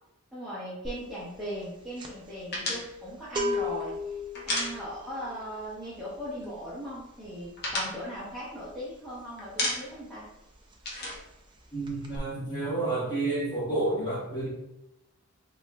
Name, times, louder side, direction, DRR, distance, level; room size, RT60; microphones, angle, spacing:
voice 1, 0.3-4.2 4.5-10.3, equal, ahead, -12 dB, 0.8 m, -38 dB
sound 1, 0.8-1.1 1.4-10.0 10.2-10.5 10.7-11.6 11.8-12.2, left 2 dB, 20° right, 0.4 m, -37 dB
sound 2, 2.5-5.3 5.6-5.7 6.0-6.7 7.1-9.1 9.4-10.1 10.4-12.2, left 1 dB, 45° left, 0.9 m, -34 dB
voice 2, 11.7-14.5, right 2 dB, 20° left, -7 dB, 1.2 m, -30 dB
4.2 x 3.0 x 2.2 m, 0.87 s
head